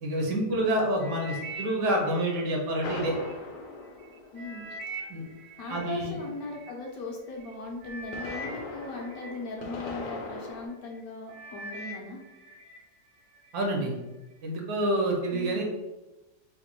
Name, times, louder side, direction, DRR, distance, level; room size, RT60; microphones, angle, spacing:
voice 1, 0.0-3.2 5.1-5.2 5.7-6.2 13.5-13.9 14.4-15.6, right 1 dB, 85° right, 0 dB, 1.4 m, -28 dB
sound 1, 1.0-3.3 3.9-6.7 7.4-7.5 7.8-10.2 10.7-11.0 11.3-12.8 13.2-13.6 14.2-14.3, right 1 dB, 65° right, 0.8 m, -43 dB
sound 2, 2.8-4.9 7.8-10.7, left 3 dB, 90° left, 1.2 m, -39 dB
voice 2, 4.3-4.7 5.6-12.2 15.3-15.6, left 3 dB, 70° left, 0 dB, 1.0 m, -38 dB
4.0 x 2.1 x 2.9 m, 1.1 s
omnidirectional pair, 1.8 m